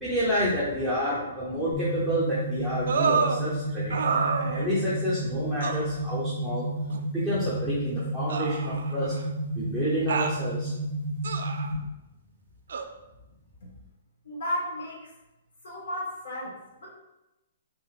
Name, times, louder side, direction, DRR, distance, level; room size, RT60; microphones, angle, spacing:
voice 1, 0.0-6.7 7.1-9.1 9.5-10.7, equal, 10° left, -11 dB, 0.6 m, -29 dB
sound 1, 1.7-11.7, right 1 dB, 40° left, 1.5 m, -31 dB
sound 2, 2.9-3.4 3.9-4.9 5.6-5.8 6.9-7.0 8.3-9.2 10.1-10.4 11.2-11.7 12.7-12.9, right 5 dB, 70° right, 0.3 m, -28 dB
voice 2, 14.2-15.1 15.6-16.9, left 1 dB, 75° left, -3 dB, 1.2 m, -34 dB
3.5 x 2.8 x 2.4 m, 0.97 s
hypercardioid pair, 165°, 0 cm